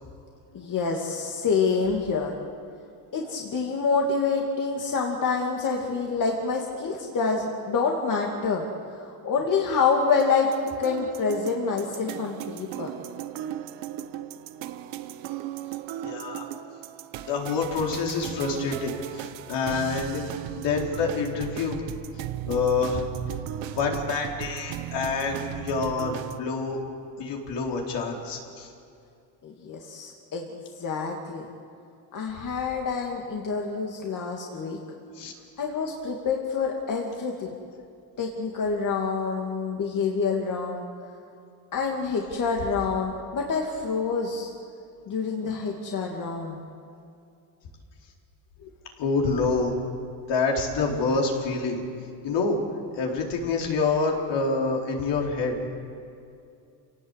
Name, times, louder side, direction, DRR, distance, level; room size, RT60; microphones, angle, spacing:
voice 1, 0.5-2.3 3.1-8.6 8.9-10.5 10.8-12.9 29.4-30.5 30.8-31.5 32.1-34.8 35.6-37.5 38.2-40.8 41.7-44.5 45.1-46.6 48.6-48.7, left 5 dB, 45° left, 0 dB, 2.5 m, -27 dB
sound 1, 10.2-26.4, right 12 dB, 75° right, 1.1 m, -36 dB
voice 2, 16.0-16.4 17.3-20.2 20.6-21.8 22.5-23.0 23.7-26.8 27.2-28.7 35.2-35.3 49.0-49.8 50.3-51.8 52.2-52.6 52.9-55.8, left 4 dB, 65° left, 0 dB, 4.3 m, -27 dB
27.0 x 18.0 x 8.3 m, 2.5 s
cardioid pair, 130°, 46 cm